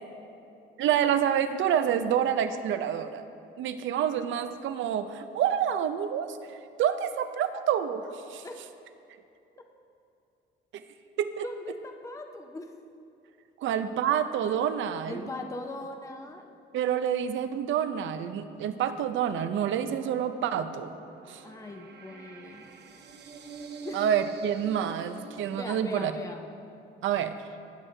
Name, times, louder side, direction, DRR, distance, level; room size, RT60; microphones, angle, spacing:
voice 1, 0.8-3.2 3.6-6.4 6.8-8.0 8.3-8.4 11.2-11.5 13.6-15.2 16.7-20.9 21.3-21.4 23.9-26.1 27.0-27.4, right 9 dB, 75° right, 10 dB, 0.6 m, -28 dB
voice 2, 11.4-12.7 13.6-14.0 15.1-16.6 21.4-22.7 23.8-24.0 25.5-26.4, left 2 dB, 15° left, 4 dB, 0.7 m, -40 dB
sound 1, 19.4-25.7, right 5 dB, 60° right, 0.9 m, -46 dB
19.0 x 6.4 x 3.3 m, 2.7 s
cardioid pair, 90°, 20 cm